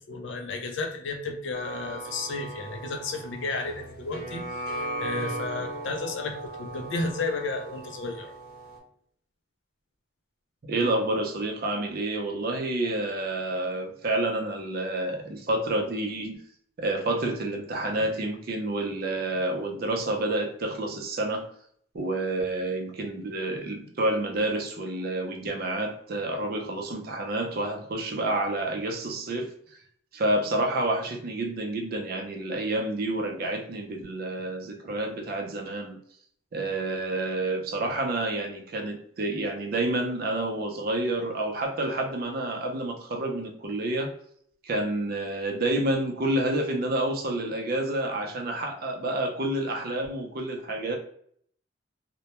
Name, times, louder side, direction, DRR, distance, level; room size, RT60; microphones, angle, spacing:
voice 1, 0.1-8.3, left 3 dB, 75° left, 3 dB, 0.4 m, -33 dB
sound 1, 1.5-8.8, right 1 dB, 55° left, 0.8 m, -37 dB
voice 2, 10.7-16.4 16.8-21.5 21.9-29.5 30.1-36.0 36.5-44.1 44.6-51.0, right 1 dB, 55° right, 3 dB, 0.5 m, -29 dB
2.1 x 2.1 x 2.8 m, 0.62 s
head